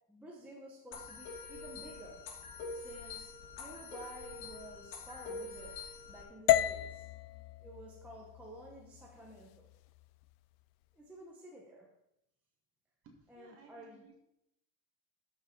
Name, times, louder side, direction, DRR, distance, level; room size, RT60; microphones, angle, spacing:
voice 1, 0.1-2.2 2.7-3.3 3.6-5.8 6.1-7.0 7.6-9.7 10.9-11.9 13.3-14.1, right 1 dB, 5° right, -4 dB, 0.8 m, -51 dB
sound 1, 0.9-6.2, left 4 dB, 90° left, 3.3 m, -45 dB
sound 2, 6.5-10.6, left 14 dB, 70° left, 0.6 m, -34 dB
voice 2, 13.0-14.2, right 4 dB, 30° right, 1 dB, 1.9 m, -59 dB
12.0 x 6.1 x 4.5 m, 0.85 s
cardioid pair, 180°, 48 cm